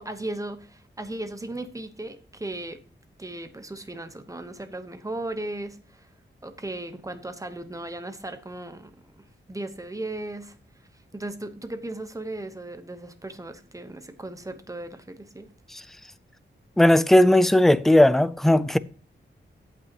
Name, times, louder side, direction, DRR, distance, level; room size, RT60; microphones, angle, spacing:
voice 1, 0.0-2.8 3.2-6.1 6.4-8.9 9.5-10.6 11.1-15.5, right 2 dB, 15° right, 0.9 m, -36 dB
voice 2, 16.8-18.8, left 1 dB, ahead, 0.3 m, -17 dB
16.0 x 5.8 x 2.9 m
wide cardioid pair, 175°, 20 cm